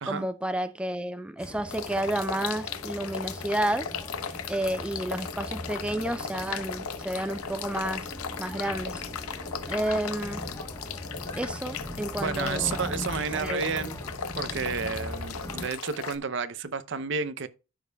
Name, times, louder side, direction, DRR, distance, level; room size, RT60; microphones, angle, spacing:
voice 1, 0.1-3.9 4.2-8.1 8.4-9.0 9.7-10.4 11.4-12.9 13.3-13.6, right 1 dB, 5° right, 0.3 m, -31 dB
sound 1, 1.4-15.7, left 1 dB, 15° left, 1.0 m, -40 dB
sound 2, 1.7-16.2, left 6 dB, 80° left, 0.7 m, -37 dB
voice 2, 12.2-14.0 14.4-17.5, right 5 dB, 55° right, 0.6 m, -31 dB
14.0 x 5.1 x 2.3 m
head